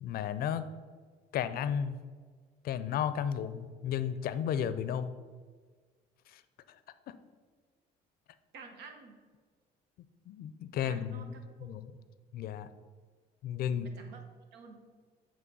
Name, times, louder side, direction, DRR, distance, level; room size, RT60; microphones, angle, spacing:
voice 1, 0.0-0.7 1.3-2.0 2.6-5.1 7.1-7.2 10.3-11.4 11.6-11.9 12.3-12.7 13.4-13.9, left 9 dB, 65° left, 13 dB, 0.5 m, -33 dB
voice 2, 8.5-9.2 10.8-11.7 13.7-14.2 14.5-14.8, right 5 dB, 85° right, 5 dB, 1.0 m, -50 dB
8.4 x 3.1 x 5.4 m, 1.5 s
cardioid pair, 110°, 17 cm